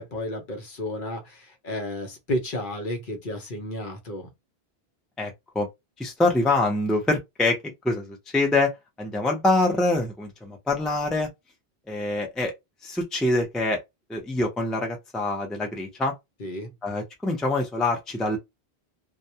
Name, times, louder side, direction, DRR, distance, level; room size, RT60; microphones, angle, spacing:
voice 1, 0.0-4.3 16.4-16.7, left 1 dB, 55° left, 0.8 m, -32 dB
voice 2, 5.2-5.7 6.0-7.6 7.8-8.7 9.0-11.3 11.9-12.5 12.8-13.8 14.1-16.1 16.8-18.4, left 2 dB, ahead, 0.5 m, -25 dB
2.3 x 2.1 x 2.7 m
omnidirectional pair, 1.0 m